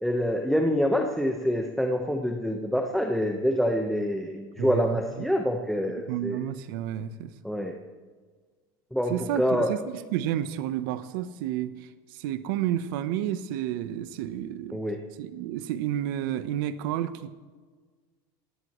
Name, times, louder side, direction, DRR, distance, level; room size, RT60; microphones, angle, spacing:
voice 1, 0.0-6.4 7.4-7.7 8.9-9.7 14.7-15.0, equal, ahead, 3 dB, 1.1 m, -26 dB
voice 2, 4.6-5.3 6.0-7.3 9.1-11.7 12.1-14.8 15.2-17.3, right 11 dB, 75° right, 13 dB, 1.0 m, -31 dB
18.5 x 17.5 x 3.2 m, 1.5 s
supercardioid pair, 110°, 12 cm